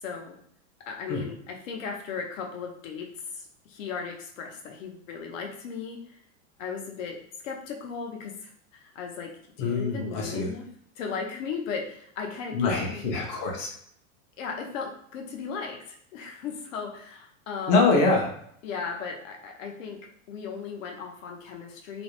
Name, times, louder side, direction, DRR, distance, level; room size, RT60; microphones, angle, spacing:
voice 1, 0.0-0.4 0.9-6.2 6.6-10.7 11.0-13.0 14.4-17.8 18.6-20.0 20.3-22.0, left 5 dB, 75° left, 1 dB, 0.7 m, -36 dB
voice 2, 9.6-10.5 12.5-13.7 17.7-18.3, left 3 dB, 30° left, -1 dB, 0.5 m, -24 dB
2.5 x 2.0 x 2.9 m, 0.65 s
supercardioid pair, 160°, 39 cm